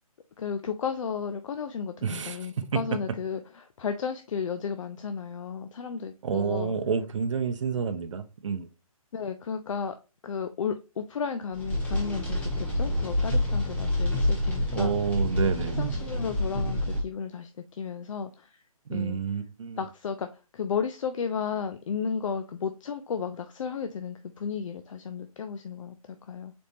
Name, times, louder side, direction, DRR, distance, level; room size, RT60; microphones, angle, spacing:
voice 1, 0.4-6.7 9.1-10.0 10.2-15.0 15.8-18.6 18.9-19.2 19.8-26.5, left 6 dB, 60° left, 0.5 m, -33 dB
voice 2, 2.0-2.5 6.2-8.7 14.7-16.0 18.9-19.8, right 6 dB, 55° right, 0.6 m, -29 dB
sound 1, 11.5-17.0, left 1 dB, 5° left, 0.8 m, -28 dB
4.2 x 3.3 x 2.8 m
hypercardioid pair, 155°, 19 cm